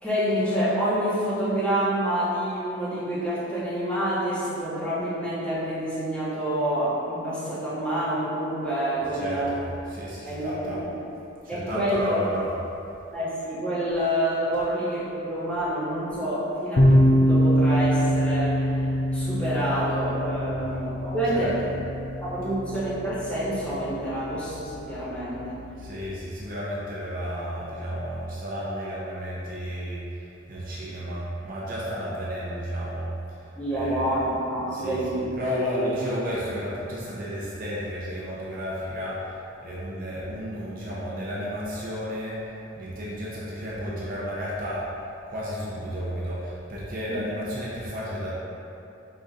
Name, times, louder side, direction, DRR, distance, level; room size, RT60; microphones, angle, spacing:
voice 1, 0.0-9.5 10.2-10.7 11.5-12.2 13.1-18.6 19.1-21.6 22.2-25.5 33.6-35.3 35.6-35.9 47.1-47.2, right 1 dB, 5° left, -12 dB, 1.2 m, -27 dB
voice 2, 9.0-10.8 11.4-12.5 20.5-20.7 21.2-21.7 25.8-34.2 34.7-44.8 45.3-48.3, equal, 45° right, -7 dB, 0.6 m, -33 dB
sound 1, 16.7-26.2, equal, 45° left, 0.4 m, -25 dB
5.1 x 3.9 x 2.4 m, 2.8 s
head